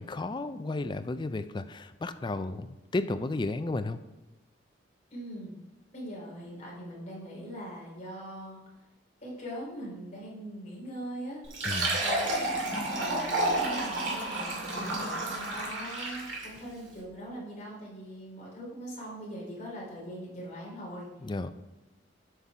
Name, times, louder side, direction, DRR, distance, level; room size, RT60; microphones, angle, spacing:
voice 1, 0.0-4.0 11.6-12.0 21.2-21.5, left 2 dB, 25° left, 11 dB, 0.4 m, -33 dB
voice 2, 5.1-5.5 5.9-8.6 9.2-11.4 12.0-12.5 13.0-21.1, equal, 40° left, -4 dB, 3.2 m, -41 dB
Fill (with liquid), 11.4-16.6, right 1 dB, 75° right, 2.4 m, -30 dB
8.0 x 5.7 x 4.8 m, 1.1 s
head